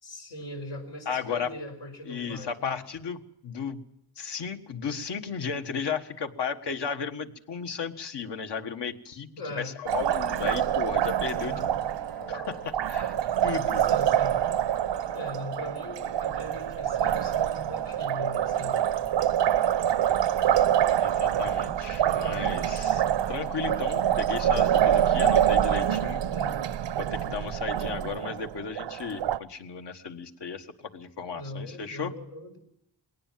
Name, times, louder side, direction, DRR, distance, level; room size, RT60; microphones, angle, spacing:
voice 1, 0.0-2.8 9.4-9.7 11.3-11.7 13.8-14.4 15.1-18.8 26.3-26.6 31.3-32.6, left 1 dB, 90° left, 3 dB, 5.1 m, -40 dB
voice 2, 1.0-1.5 2.0-3.8 4.2-11.5 12.3-13.2 13.4-13.8 21.0-23.0 23.3-26.2 27.0-30.7 30.9-32.1, left 6 dB, 75° left, 6 dB, 1.7 m, -34 dB
sound 1, 9.9-28.8, left 4 dB, 60° left, 3.5 m, -51 dB
Liquid, 9.9-29.4, right 10 dB, 90° right, 0.8 m, -26 dB
21.0 x 18.5 x 7.5 m, 0.78 s
wide cardioid pair, 110°, 42 cm